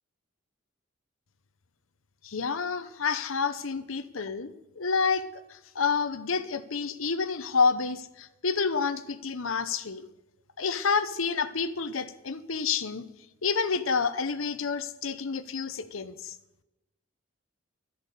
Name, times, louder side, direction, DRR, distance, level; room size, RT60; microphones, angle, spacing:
voice 1, 2.2-10.1 10.6-13.1 13.4-16.3, left 5 dB, 80° left, 12 dB, 0.9 m, -29 dB
13.0 x 10.5 x 6.8 m, 0.94 s
head